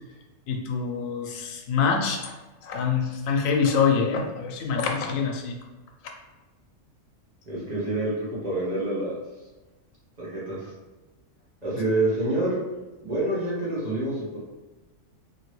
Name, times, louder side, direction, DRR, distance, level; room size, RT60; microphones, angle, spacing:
voice 1, 0.5-2.3 2.6-5.6, left 5 dB, 90° left, 2 dB, 1.0 m, -25 dB
voice 2, 7.5-9.2 10.2-10.7 11.6-12.6 13.0-14.4, right 2 dB, 35° right, -8 dB, 1.0 m, -27 dB
2.8 x 2.5 x 3.1 m, 1.2 s
omnidirectional pair, 1.4 m